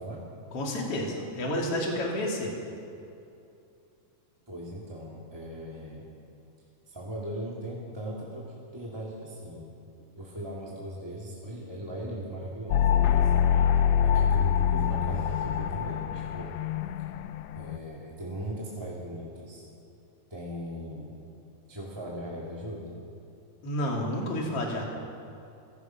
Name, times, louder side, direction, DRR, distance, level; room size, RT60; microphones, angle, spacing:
voice 1, 0.0-0.6 4.5-6.1 6.9-9.7 10.1-13.3 14.0-16.6 17.5-19.7 20.3-21.2 21.7-23.0, right 1 dB, 10° right, -5 dB, 2.2 m, -39 dB
voice 2, 0.5-2.5 23.6-24.8, left 1 dB, 45° left, -1 dB, 3.7 m, -30 dB
sound 1, 12.7-17.8, left 9 dB, 90° left, 1.4 m, -25 dB
29.0 x 15.5 x 5.9 m, 2.7 s
omnidirectional pair, 3.7 m